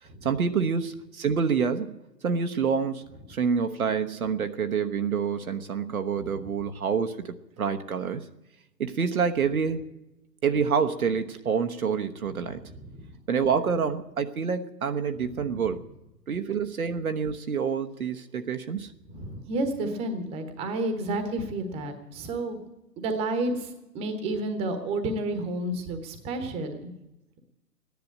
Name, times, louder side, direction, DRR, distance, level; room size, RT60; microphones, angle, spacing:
voice 1, 0.0-1.9 2.2-3.0 3.3-8.3 8.8-9.8 10.4-12.6 13.3-15.8 16.3-18.9, right 6 dB, 60° right, 8 dB, 1.1 m, -27 dB
voice 2, 19.1-22.6 23.0-26.9, right 2 dB, 10° right, 8 dB, 1.1 m, -30 dB
14.5 x 10.5 x 8.6 m, 0.95 s
figure-of-eight pair, 130°, 49 cm